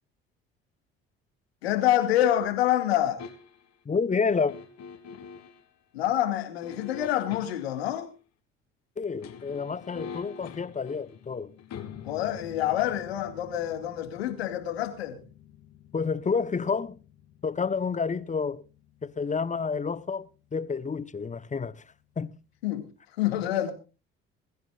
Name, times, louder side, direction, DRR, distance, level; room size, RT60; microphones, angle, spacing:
voice 1, 1.6-3.3 5.9-8.1 12.0-15.2 22.6-22.9 23.2-23.7, left 12 dB, 85° left, 2.2 m, -27 dB
sound 1, 3.2-3.8 4.5-5.7 6.6-7.8 9.1-20.0 20.3-20.4, left 7 dB, 60° left, 2.8 m, -46 dB
voice 2, 3.8-4.5 9.0-11.6 15.9-17.0 17.4-18.6 19.0-21.8 22.2-22.4, left 5 dB, 25° left, 1.0 m, -29 dB
22.0 x 14.0 x 2.5 m
hypercardioid pair, 55°, 31 cm